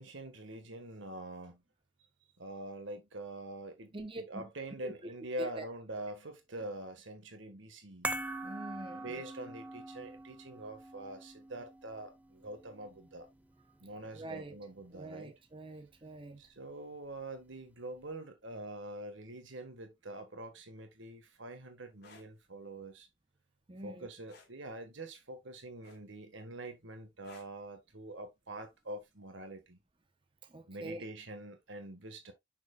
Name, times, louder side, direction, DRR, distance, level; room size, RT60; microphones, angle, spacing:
voice 1, 0.0-1.6 2.4-8.1 8.9-13.3 13.8-15.3 16.4-23.1 23.8-29.8 30.7-32.3, right 1 dB, 70° right, 1.6 m, -45 dB
voice 2, 3.9-4.5 4.8-5.1 5.4-5.6 8.4-9.3 14.1-14.6 14.9-16.4 23.7-24.1 30.4-31.0, right 2 dB, 25° right, 0.8 m, -45 dB
sound 1, 8.0-14.5 14.7-14.9, right 1 dB, 5° right, 0.4 m, -43 dB
sound 2, 21.9-22.3 24.3-24.6 25.8-26.3 27.2-27.6 29.0-29.2, left 3 dB, 55° left, 2.2 m, -56 dB
6.7 x 6.1 x 2.4 m
head